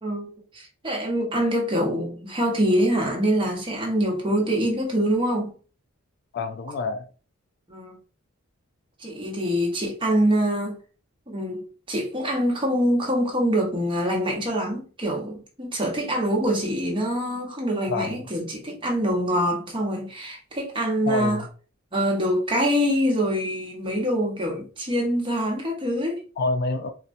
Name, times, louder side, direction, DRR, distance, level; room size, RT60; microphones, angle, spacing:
voice 1, 0.0-5.5 7.7-8.0 9.0-10.8 11.3-21.4 21.9-26.2, equal, 25° right, 1.0 m, -25 dB
voice 2, 6.3-7.1 17.9-18.2 21.1-21.5 26.4-26.9, left 3 dB, 50° left, 0.4 m, -27 dB
4.0 x 2.2 x 2.6 m
head